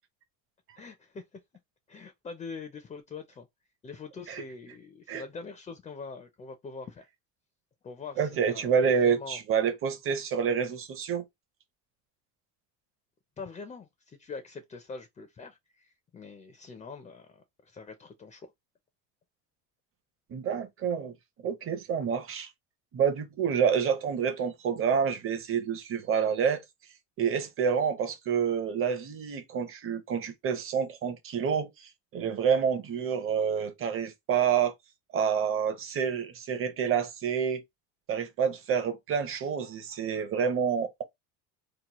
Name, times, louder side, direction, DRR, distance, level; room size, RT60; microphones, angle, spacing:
voice 1, 0.8-1.2 1.9-3.5 3.8-7.1 7.8-9.4 13.4-18.5, left 4 dB, 20° left, 0.4 m, -43 dB
voice 2, 8.2-11.2 20.3-21.1 21.4-22.5 22.9-26.6 27.2-34.7 35.1-37.6 38.1-41.0, right 7 dB, 35° right, 0.6 m, -28 dB
2.9 x 2.0 x 2.9 m
cardioid pair, 120°, 39 cm